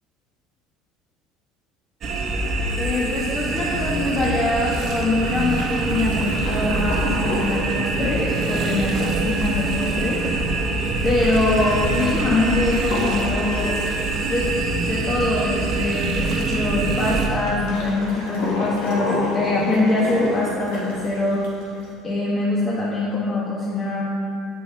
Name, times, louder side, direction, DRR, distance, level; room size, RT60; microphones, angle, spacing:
sound 1, 2.0-17.3, right 3 dB, 50° right, 1.0 m, -24 dB
voice 1, 2.8-10.2 11.0-13.8 14.3-21.4 22.0-24.0, left 2 dB, 35° left, -5 dB, 1.3 m, -23 dB
sound 2, 3.6-21.9, left 2 dB, 75° left, 2.0 m, -32 dB
8.3 x 6.1 x 4.7 m, 2.5 s
supercardioid pair, 85°, 0 cm